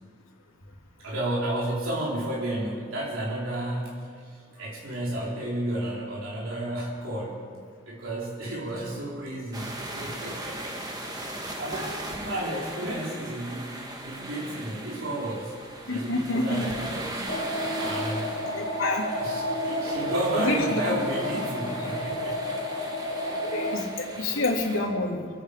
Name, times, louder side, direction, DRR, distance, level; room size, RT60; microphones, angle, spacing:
voice 1, 1.0-7.4 7.8-10.8 11.3-15.5 15.9-17.2 17.6-18.4 19.2-22.4 23.3-23.4, right 1 dB, 85° right, -4 dB, 3.5 m, -32 dB
sound 1, 9.5-24.8, right 1 dB, 20° right, 1.5 m, -38 dB
voice 2, 15.9-16.7 18.5-19.1 19.9-20.6 23.4-25.3, left 2 dB, 85° left, -1 dB, 2.9 m, -28 dB
sound 2, 17.3-23.8, left 1 dB, 45° left, 1.9 m, -31 dB
26.5 x 9.4 x 5.1 m, 2.1 s
head